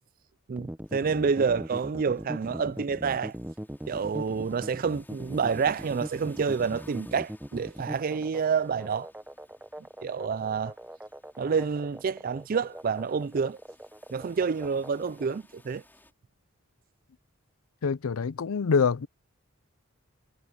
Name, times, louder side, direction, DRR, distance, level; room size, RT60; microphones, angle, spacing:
voice 1, 0.5-3.3 3.9-9.1 10.0-10.7 11.4-13.6 14.1-15.8, right 5 dB, 40° right, 0.4 m, -28 dB
sound 1, 0.6-15.4, equal, 5° right, 0.9 m, -40 dB
sound 2, 0.8-16.1, left 1 dB, 10° left, 5.3 m, -59 dB
voice 2, 17.8-19.1, left 5 dB, 80° left, 0.5 m, -25 dB
head